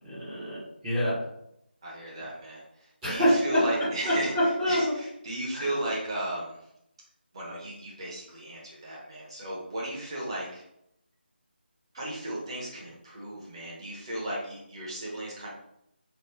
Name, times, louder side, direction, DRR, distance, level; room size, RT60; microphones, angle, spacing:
voice 1, 0.0-1.2 3.0-3.6 4.1-4.9 5.5-5.6, equal, 10° right, -13 dB, 0.7 m, -26 dB
voice 2, 1.8-2.6 3.1-6.6 7.3-10.6 11.9-15.5, right 1 dB, 25° right, -6 dB, 1.0 m, -35 dB
3.2 x 2.3 x 3.3 m, 0.78 s
figure-of-eight pair, 160°, 6 cm